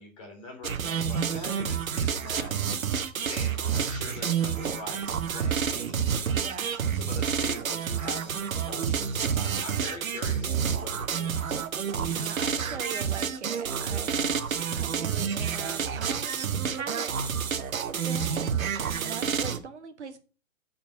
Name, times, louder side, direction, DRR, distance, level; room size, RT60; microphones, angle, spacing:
voice 1, 0.0-2.5 3.2-6.4 6.7-11.5, left 3 dB, 25° left, 2 dB, 2.1 m, -43 dB
sound 1, 0.6-19.6, right 7 dB, 75° right, 1.1 m, -29 dB
voice 2, 6.3-7.0 11.9-17.3 18.0-18.4 18.8-20.2, right 6 dB, 55° right, 8 dB, 1.3 m, -41 dB
9.1 x 4.1 x 5.9 m, 0.36 s
hypercardioid pair, 175°, 41 cm